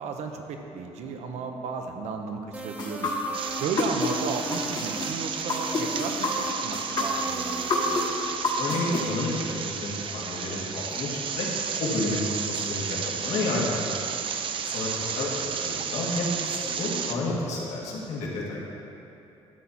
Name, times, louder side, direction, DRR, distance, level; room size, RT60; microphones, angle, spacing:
voice 1, 0.0-3.1 3.6-8.1, right 5 dB, 80° right, 4 dB, 1.0 m, -34 dB
sound 1, 2.5-8.4, right 1 dB, 15° right, 0.7 m, -38 dB
sound 2, 2.8-4.1 4.5-9.0, left 3 dB, 35° left, 1.3 m, -27 dB
sound 3, 3.3-17.1, right 6 dB, 50° right, 0.6 m, -32 dB
voice 2, 8.6-11.5 11.8-14.0 14.6-18.6, left 2 dB, 90° left, -4 dB, 2.4 m, -30 dB
12.5 x 8.5 x 4.4 m, 2.9 s
cardioid pair, 170°, 11 cm